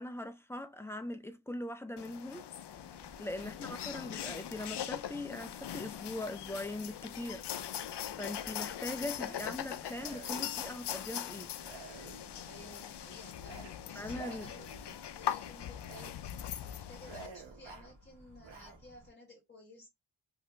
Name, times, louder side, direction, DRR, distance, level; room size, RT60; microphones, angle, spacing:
voice 1, 0.0-2.5 3.2-7.4 8.2-11.5 14.0-14.5, left 1 dB, 5° left, 0.5 m, -41 dB
sound 1, 2.0-17.3, left 10 dB, 65° left, 0.5 m, -41 dB
sound 2, 2.7-19.1, right 1 dB, 40° right, 1.7 m, -59 dB
voice 2, 3.4-3.8 12.4-14.7 15.1-19.9, left 1 dB, 20° left, 1.2 m, -55 dB
sound 3, 9.2-9.5 9.9-10.8 11.6-12.5 13.4-13.7 14.1-15.0 15.8-16.1 16.5-16.6 17.0-17.9 18.4-18.8, right 5 dB, 75° right, 1.0 m, -50 dB
2.8 x 2.6 x 3.2 m
cardioid pair, 55°, 45 cm